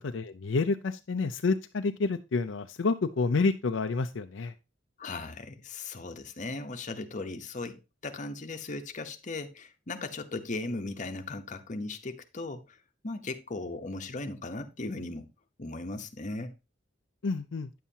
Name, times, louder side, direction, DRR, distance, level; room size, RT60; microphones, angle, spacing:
voice 1, 0.1-4.5 17.2-17.7, left 4 dB, 75° left, 0.5 m, -29 dB
voice 2, 5.0-12.8 13.0-15.3 15.6-16.6, left 2 dB, 40° left, 1.0 m, -37 dB
9.4 x 7.2 x 2.8 m
head